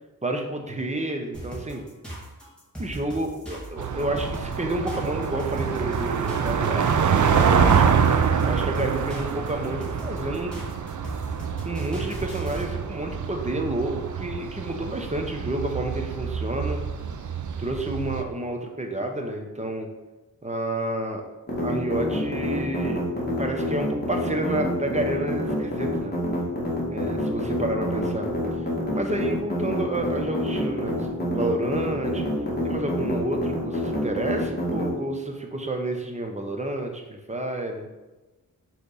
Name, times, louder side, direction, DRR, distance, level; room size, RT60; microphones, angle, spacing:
voice 1, 0.2-1.8 2.8-7.8 8.4-10.5 11.6-16.8 17.6-19.9 20.4-21.2 21.6-23.0 23.4-26.2 26.9-28.3 28.9-32.3 32.6-37.9, right 1 dB, 20° right, 3 dB, 1.1 m, -30 dB
sound 1, 1.3-12.7, right 1 dB, 5° left, 2.4 m, -38 dB
sound 2, 3.8-18.2, right 7 dB, 60° right, 0.6 m, -26 dB
sound 3, 21.5-34.9, left 1 dB, 30° left, 2.0 m, -27 dB
6.7 x 3.5 x 5.6 m, 1.1 s
wide cardioid pair, 90°, 35 cm